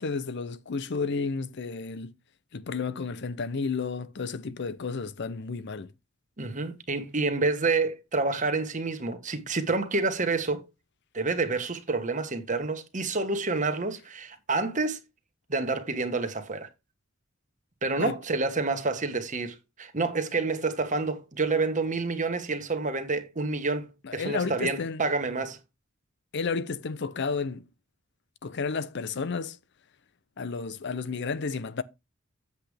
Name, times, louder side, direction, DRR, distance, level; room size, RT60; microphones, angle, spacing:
voice 1, 0.0-2.1 2.5-5.9 18.0-18.2 24.0-25.0 26.3-27.6 28.4-29.6 30.4-31.8, left 4 dB, 60° left, 0.6 m, -32 dB
voice 2, 6.4-10.7 11.1-15.0 15.5-16.7 17.8-25.6, right 3 dB, 40° right, 1.4 m, -28 dB
8.2 x 7.9 x 3.3 m
head